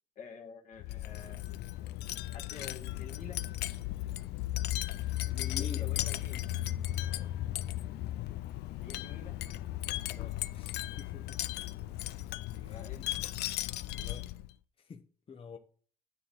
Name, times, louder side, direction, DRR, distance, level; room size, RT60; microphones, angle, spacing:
voice 1, 0.2-1.4 2.3-3.5 5.6-6.4 8.8-9.5 12.5-13.1, left 5 dB, 50° left, 1.8 m, -48 dB
Wind chime, 0.8-14.5, left 15 dB, 75° left, 0.5 m, -36 dB
voice 2, 5.0-6.2 7.0-7.4 10.1-11.4 12.6-12.9 14.0-14.3 14.8-15.6, left 5 dB, 35° left, 0.9 m, -48 dB
9.9 x 3.9 x 7.0 m
cardioid pair, 110°, 17 cm